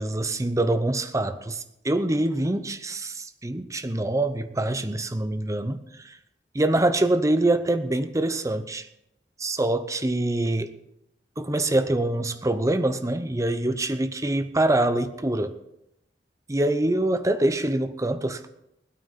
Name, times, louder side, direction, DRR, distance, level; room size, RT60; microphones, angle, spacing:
voice 1, 0.0-6.2 6.5-8.9 9.4-10.8 11.4-15.5 16.5-18.5, right 1 dB, 20° right, 11 dB, 0.7 m, -25 dB
16.5 x 12.5 x 4.2 m, 0.82 s
head